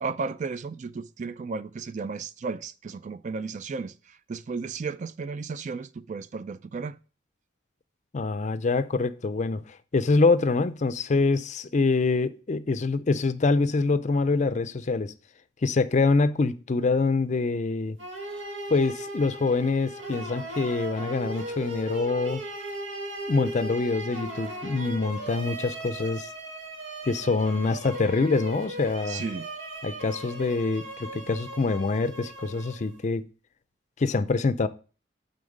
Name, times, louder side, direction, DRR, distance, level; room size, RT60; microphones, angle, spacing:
voice 1, 0.0-7.0 29.1-29.5, right 4 dB, 40° right, 0.3 m, -34 dB
voice 2, 8.1-9.6 9.9-15.1 15.6-18.0 18.7-22.4 23.3-26.3 27.1-29.2 29.8-33.3 34.0-34.7, left 3 dB, 40° left, 0.4 m, -25 dB
sound 1, 18.0-33.1, right 1 dB, 90° right, 1.5 m, -37 dB
8.6 x 3.9 x 5.3 m
head